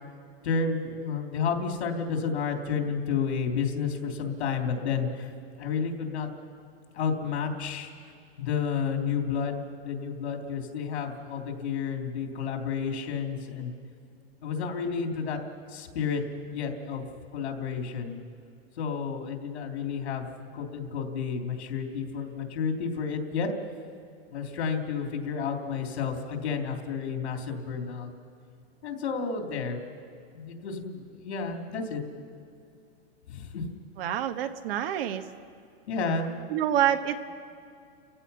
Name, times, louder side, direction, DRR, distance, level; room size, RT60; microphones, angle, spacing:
voice 1, 0.4-5.3 5.6-6.3 6.9-7.9 8.4-13.7 14.4-15.4 15.7-16.2 16.5-17.1 17.3-18.2 18.8-20.3 20.5-23.5 24.3-28.1 28.8-29.8 30.3-32.0 33.3-33.6 35.9-36.3, left 6 dB, 80° left, 3 dB, 3.4 m, -31 dB
voice 2, 34.0-35.2 36.5-37.2, right 10 dB, 60° right, 8 dB, 1.4 m, -27 dB
30.0 x 15.5 x 5.7 m, 2.4 s
hypercardioid pair, 135°, 33 cm